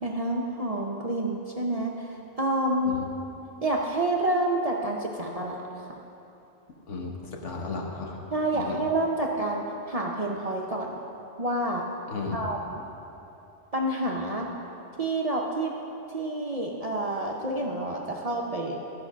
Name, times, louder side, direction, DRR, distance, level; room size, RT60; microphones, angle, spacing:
voice 1, 0.0-3.0 3.6-5.6 8.3-11.0 11.4-11.8 12.3-12.6 13.7-14.5 15.0-15.7 16.1-18.8, right 1 dB, 40° right, -2 dB, 0.6 m, -28 dB
voice 2, 6.9-8.8 12.1-12.4, left 3 dB, 70° left, 0 dB, 1.4 m, -35 dB
12.5 x 5.2 x 6.1 m, 2.9 s
omnidirectional pair, 1.3 m